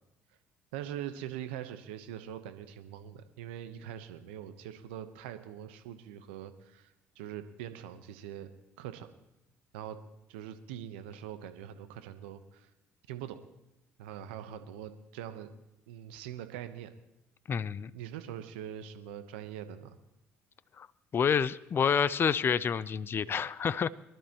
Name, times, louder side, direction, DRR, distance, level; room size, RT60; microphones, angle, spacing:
voice 1, 0.7-8.5 8.8-9.1 9.7-10.0 10.3-12.7 13.1-13.4 14.0-15.5 15.9-16.9 17.9-20.0, right 10 dB, 85° right, 10 dB, 0.9 m, -43 dB
voice 2, 17.5-17.9 20.8-20.9 21.1-23.9, left 7 dB, 40° left, 18 dB, 0.5 m, -28 dB
23.5 x 12.0 x 3.0 m, 0.91 s
hypercardioid pair, 65°, 6 cm